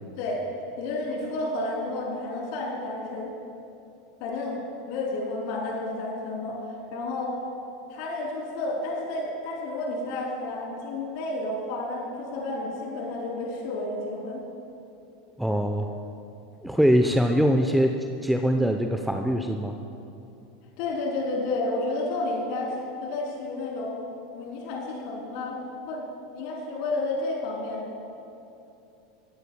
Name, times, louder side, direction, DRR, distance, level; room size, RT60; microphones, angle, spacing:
voice 1, 0.8-3.3 4.2-6.6 6.9-7.4 7.9-14.4 20.8-24.0 24.3-25.6 25.9-27.9, left 2 dB, 55° left, -2 dB, 3.4 m, -31 dB
voice 2, 15.4-15.9 16.6-17.9 18.2-19.7, equal, ahead, 5 dB, 0.8 m, -22 dB
24.0 x 16.0 x 2.3 m, 2.8 s
figure-of-eight pair, 80°, 0 cm